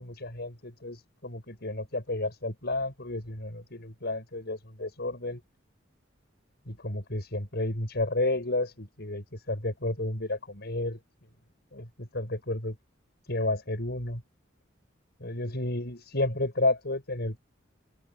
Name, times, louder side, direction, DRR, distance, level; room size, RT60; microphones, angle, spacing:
voice 1, 0.0-5.4 6.7-11.0 11.7-12.8 13.2-14.2 15.2-17.4, left 2 dB, 55° left, 7.1 m, -31 dB
head